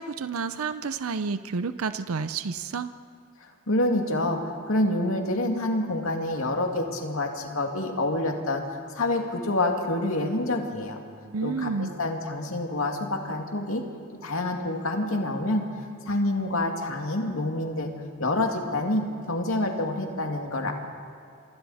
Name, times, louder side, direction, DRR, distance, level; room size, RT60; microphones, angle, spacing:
voice 1, 0.0-2.9 11.2-11.9, right 5 dB, 85° right, 12 dB, 0.6 m, -30 dB
voice 2, 3.7-8.6 8.9-11.0 11.4-13.8 14.2-15.6 16.1-17.9 18.2-20.7, left 1 dB, 75° left, 2 dB, 2.3 m, -27 dB
28.0 x 25.0 x 4.3 m, 2.3 s
head